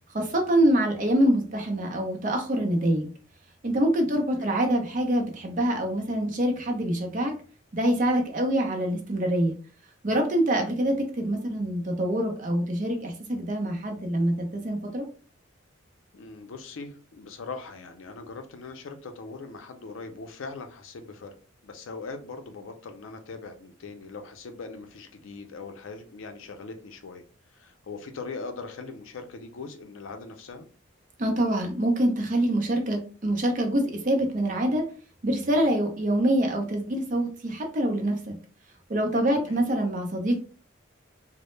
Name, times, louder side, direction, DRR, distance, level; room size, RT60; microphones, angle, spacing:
voice 1, 0.1-3.1 3.6-7.3 7.7-9.6 10.0-15.0 31.2-34.9 35.2-38.3 38.9-40.4, right 1 dB, 40° right, 0.5 m, -25 dB
voice 2, 4.1-4.5 8.5-8.7 16.1-21.3 21.6-27.2 27.5-30.7 39.3-39.6, left 4 dB, 75° left, 0.4 m, -41 dB
2.0 x 2.0 x 3.0 m
head